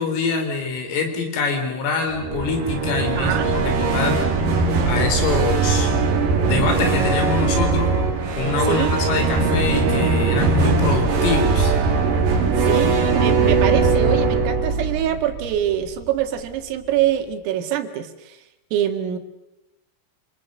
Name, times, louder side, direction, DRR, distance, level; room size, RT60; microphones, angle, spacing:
voice 1, 0.0-4.2 4.9-5.9 6.4-7.9 8.3-11.8, left 4 dB, 85° left, 5 dB, 6.6 m, -24 dB
sound 1, 2.1-16.1, right 4 dB, 50° right, 3.8 m, -20 dB
voice 2, 12.6-18.4 18.7-19.2, right 11 dB, 90° right, 6 dB, 4.6 m, -24 dB
27.5 x 27.5 x 6.6 m, 0.93 s
omnidirectional pair, 5.7 m